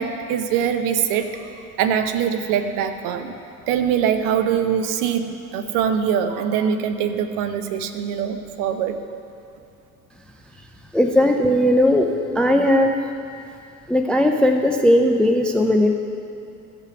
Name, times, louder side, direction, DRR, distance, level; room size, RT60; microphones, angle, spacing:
voice 1, 0.0-1.5 1.8-3.3 3.7-9.0, right 8 dB, 50° right, 7 dB, 0.8 m, -23 dB
voice 2, 10.9-12.1 12.4-12.9 13.9-15.9, left 1 dB, ahead, 4 dB, 0.4 m, -17 dB
15.0 x 5.6 x 6.0 m, 2.6 s
figure-of-eight pair, 65°, 43 cm